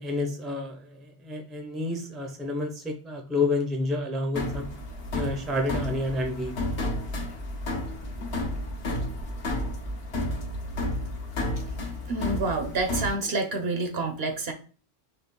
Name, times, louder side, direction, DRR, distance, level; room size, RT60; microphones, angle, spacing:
voice 1, 0.0-4.7 5.1-6.5, left 2 dB, ahead, 3 dB, 0.6 m, -29 dB
sound 1, 4.3-13.1, left 1 dB, 55° left, 1.2 m, -31 dB
voice 2, 12.1-14.5, right 3 dB, 60° right, 5 dB, 1.0 m, -28 dB
4.3 x 3.2 x 3.8 m, 0.38 s
omnidirectional pair, 1.3 m